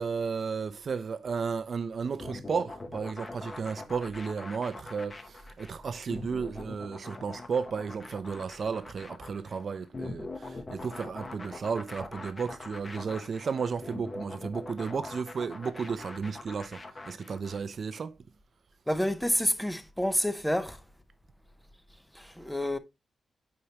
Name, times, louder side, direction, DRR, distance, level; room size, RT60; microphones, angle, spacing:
voice 1, 0.0-18.1, right 5 dB, 45° right, 0.5 m, -33 dB
sound 1, 2.2-17.6, left 2 dB, 25° left, 0.9 m, -42 dB
voice 2, 18.9-20.8 22.2-22.8, equal, 5° left, 0.5 m, -28 dB
8.5 x 4.5 x 2.8 m
wide cardioid pair, 170°, 0 cm